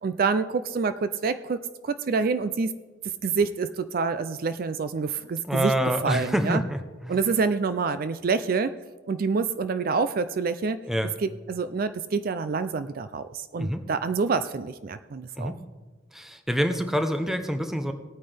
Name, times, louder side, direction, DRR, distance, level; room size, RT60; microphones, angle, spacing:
voice 1, 0.0-2.7 3.0-5.7 6.0-6.6 7.1-8.7 9.1-10.8 11.2-15.5, right 4 dB, 50° right, 12 dB, 0.4 m, -27 dB
voice 2, 5.5-7.2 10.9-11.1 13.6-13.8 15.4-15.6 16.1-17.9, equal, ahead, 7 dB, 0.7 m, -26 dB
18.0 x 9.2 x 3.4 m, 1.3 s
head